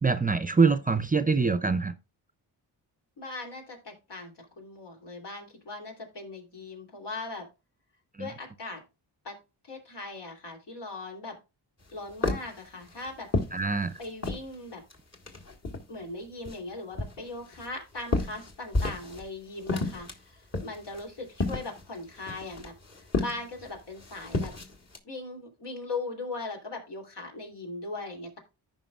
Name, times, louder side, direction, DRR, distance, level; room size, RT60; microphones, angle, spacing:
voice 1, 0.0-1.9 8.2-8.3 13.5-13.9, right 4 dB, 20° right, 0.5 m, -24 dB
voice 2, 3.2-7.5 8.2-8.8 9.2-9.4 9.7-11.4 11.9-13.3 14.0-14.8 15.9-22.7 23.2-24.5 25.0-28.4, left 3 dB, 70° left, 3.2 m, -39 dB
sound 1, 11.8-14.5 14.9-16.0 16.4-19.3 19.5-25.0, left 2 dB, 35° left, 1.8 m, -32 dB
14.5 x 5.3 x 2.4 m
cardioid pair, 75°, 42 cm